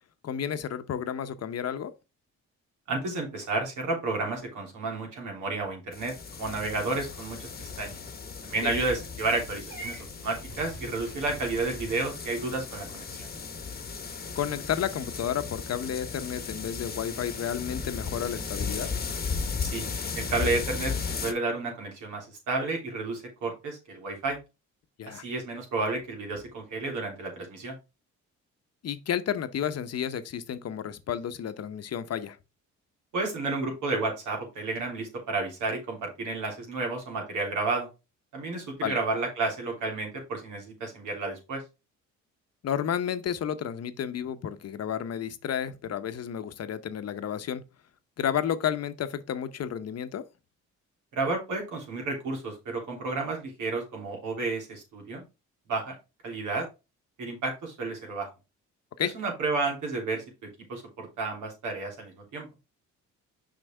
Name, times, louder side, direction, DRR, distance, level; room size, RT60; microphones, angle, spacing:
voice 1, 0.2-1.9 8.6-8.7 14.4-18.9 25.0-25.2 28.8-32.4 38.8-39.0 42.6-47.6 48.2-50.2 59.0-59.1, left 9 dB, 55° left, 0.8 m, -31 dB
voice 2, 2.9-8.0 8.4-13.3 19.6-19.9 20.2-20.9 21.2-24.4 25.1-27.7 33.1-37.9 38.3-41.6 51.1-55.2 55.7-56.0 56.2-56.6 57.2-58.3 59.1-60.2 60.7-62.5, right 3 dB, 80° right, 3.4 m, -31 dB
sound 1, 5.9-21.3, left 5 dB, 30° left, 1.0 m, -36 dB
Purr / Meow, 9.7-11.9, right 2 dB, 35° right, 3.2 m, -43 dB
6.4 x 5.3 x 3.4 m
cardioid pair, 90°, 30 cm